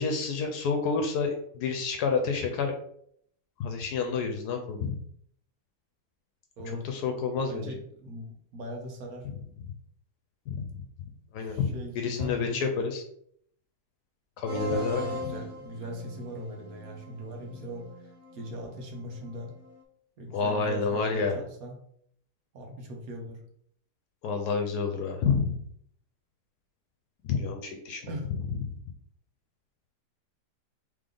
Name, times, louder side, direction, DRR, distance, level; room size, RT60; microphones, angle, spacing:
voice 1, 0.0-2.7 3.6-5.0 6.8-7.8 9.3-9.4 10.5-10.8 11.3-13.0 14.4-15.1 20.3-21.4 24.2-25.5 27.2-28.1 28.6-28.7, left 5 dB, 75° left, 3 dB, 1.1 m, -29 dB
voice 2, 6.6-6.9 7.5-9.3 11.4-12.6 14.5-19.5 20.2-21.8 22.5-23.4 28.1-28.3, equal, 65° right, 1 dB, 1.4 m, -40 dB
sound 1, 14.5-19.8, left 3 dB, 20° left, 0.5 m, -40 dB
3.4 x 3.4 x 3.7 m, 0.67 s
omnidirectional pair, 1.7 m